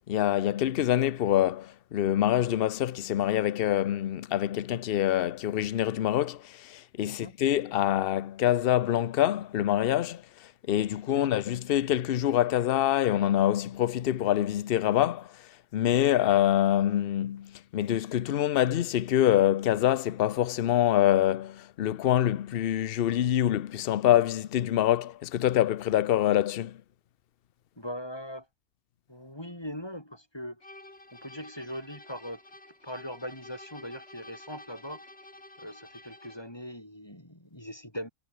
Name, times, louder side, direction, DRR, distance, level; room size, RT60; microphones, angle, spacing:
voice 1, 0.0-10.2 10.7-15.3 15.7-26.8, left 12 dB, 55° left, 0.6 m, -25 dB
voice 2, 7.0-7.3 11.1-11.3 27.8-28.5 29.1-30.6 31.1-32.4 32.8-35.0 35.6-38.1, equal, 15° left, 5.0 m, -40 dB
sound 1, 30.6-36.5, left 2 dB, 40° left, 5.7 m, -50 dB
omnidirectional pair, 1.6 m